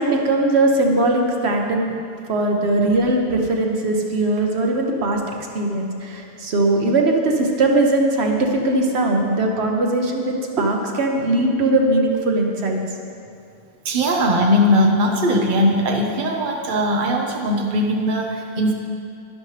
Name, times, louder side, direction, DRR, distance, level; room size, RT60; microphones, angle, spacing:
voice 1, 0.0-1.9 2.3-5.2 5.5-12.8, right 2 dB, 75° right, 1 dB, 1.2 m, -20 dB
voice 2, 13.8-18.7, equal, 50° right, 1 dB, 1.0 m, -19 dB
12.0 x 11.0 x 3.3 m, 2.5 s
omnidirectional pair, 1.1 m